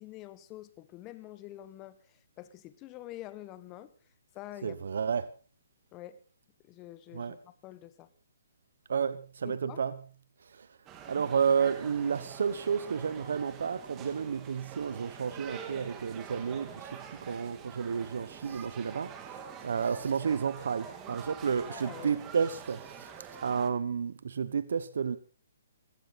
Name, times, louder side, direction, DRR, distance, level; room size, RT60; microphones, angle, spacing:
voice 1, 0.0-3.9 4.3-4.8 5.9-6.2 6.6-8.1 9.4-9.8 21.7-22.2, left 14 dB, 25° left, 1.4 m, -46 dB
voice 2, 4.6-5.3 7.1-7.3 8.9-9.9 10.4-10.7 11.0-23.1 23.4-25.2, right 6 dB, 70° right, 1.0 m, -31 dB
sound 1, 10.9-23.7, right 7 dB, 20° right, 2.5 m, -46 dB
19.0 x 16.0 x 4.2 m
hypercardioid pair, 150°, 0 cm